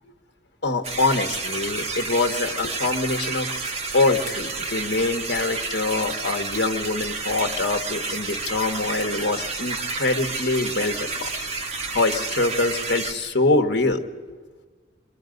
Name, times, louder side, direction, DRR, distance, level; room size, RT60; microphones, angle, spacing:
voice 1, 0.6-3.5 3.9-11.3 11.9-14.0, left 2 dB, 65° left, 5 dB, 1.5 m, -24 dB
sound 1, 0.8-13.1, right 3 dB, 35° right, 1.7 m, -30 dB
28.0 x 22.0 x 5.3 m, 1.4 s
head